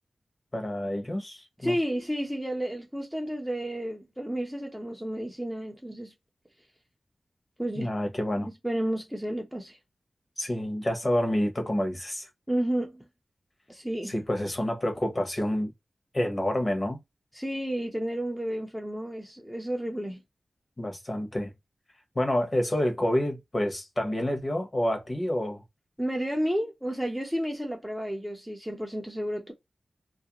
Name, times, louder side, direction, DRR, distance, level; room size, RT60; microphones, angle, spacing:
voice 1, 0.5-1.7 7.8-8.5 10.4-12.3 14.1-15.7 16.1-17.0 20.8-21.5 22.1-25.6, left 1 dB, 30° left, 0.8 m, -28 dB
voice 2, 1.6-6.1 7.6-7.9 8.6-9.8 12.5-13.0 13.7-14.1 17.3-20.2 26.0-29.5, equal, 5° right, 0.5 m, -31 dB
2.4 x 2.1 x 2.8 m
wide cardioid pair, 100°, 0 cm